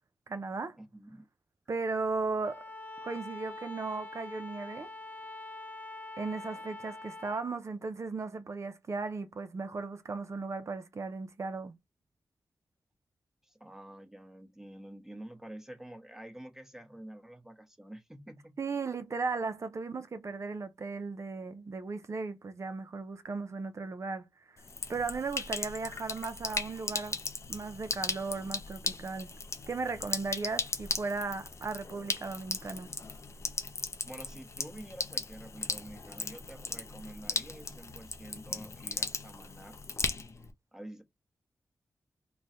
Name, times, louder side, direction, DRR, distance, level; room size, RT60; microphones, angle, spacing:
voice 1, 0.3-0.8 1.7-2.6 3.0-4.9 6.2-11.7 18.6-24.6 24.9-27.2 27.5-29.3 29.7-32.9, right 4 dB, 50° right, 0.6 m, -36 dB
voice 2, 0.8-1.3 13.4-18.6 34.0-39.8 40.7-41.0, right 1 dB, 5° right, 1.0 m, -48 dB
Bowed string instrument, 2.4-7.5, left 2 dB, 25° left, 0.9 m, -44 dB
Sink (filling or washing), 24.6-40.5, left 4 dB, 45° left, 0.5 m, -37 dB
3.1 x 2.2 x 4.1 m
cardioid pair, 65°, 6 cm